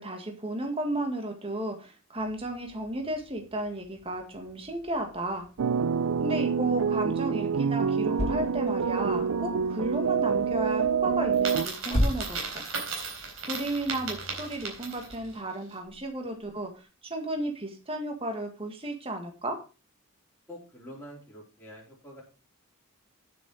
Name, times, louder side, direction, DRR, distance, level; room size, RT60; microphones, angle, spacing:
voice 1, 0.0-5.5 6.2-12.7 13.5-19.6, right 1 dB, 25° right, 3 dB, 1.8 m, -33 dB
sound 1, 2.2-15.4, left 1 dB, 30° left, 1.6 m, -38 dB
sound 2, 5.6-11.7, right 6 dB, 85° right, 0.5 m, -27 dB
Coin (dropping), 11.3-15.3, right 4 dB, 65° right, 4.0 m, -36 dB
voice 2, 20.5-22.2, equal, 10° left, -7 dB, 4.0 m, -46 dB
9.7 x 7.8 x 4.8 m, 0.32 s
head